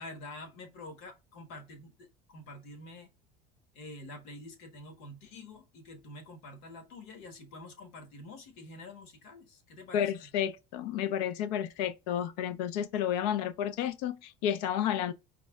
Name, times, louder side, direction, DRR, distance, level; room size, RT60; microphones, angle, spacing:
voice 1, 0.0-1.9 2.3-3.1 3.7-10.1, left 2 dB, 70° left, 1.4 m, -47 dB
voice 2, 9.9-15.1, left 10 dB, 90° left, 0.5 m, -31 dB
4.5 x 2.1 x 3.5 m
cardioid pair, 145°, 20 cm